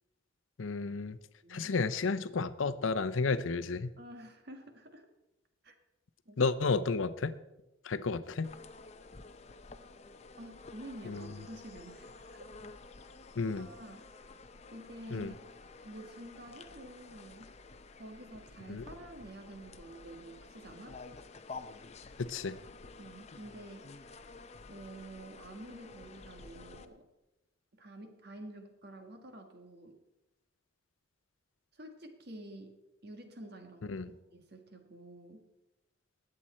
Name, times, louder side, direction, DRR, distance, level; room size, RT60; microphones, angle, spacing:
voice 1, 0.6-1.2 1.5-3.9 6.4-7.4 7.8-8.5 11.1-11.3 13.4-13.7 15.1-15.3 18.7-18.8 22.2-22.6 33.9-34.1, left 4 dB, 80° left, 14 dB, 0.6 m, -32 dB
voice 2, 1.4-1.7 4.0-5.1 5.6-5.7 6.2-6.4 10.4-12.4 13.5-14.3 14.7-15.3 15.8-17.5 18.0-21.0 23.0-24.0 24.7-27.1 27.8-30.0 31.7-35.5, right 1 dB, 55° right, 6 dB, 1.6 m, -49 dB
sound 1, 8.4-26.8, left 3 dB, 35° left, 0.6 m, -51 dB
20.0 x 7.7 x 4.3 m, 0.96 s
head